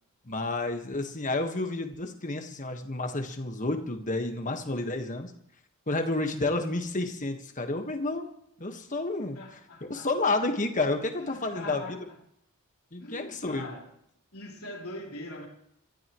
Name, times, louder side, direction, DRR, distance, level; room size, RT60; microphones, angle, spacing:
voice 1, 0.3-5.3 5.9-8.3 8.6-9.6 9.9-12.0 12.9-13.7, left 2 dB, 35° left, 1.5 m, -30 dB
voice 2, 9.3-10.1 10.5-10.6 11.2-12.2 13.0-13.9 14.3-15.5, left 1 dB, 80° left, 3.6 m, -42 dB
27.5 x 13.5 x 3.1 m
head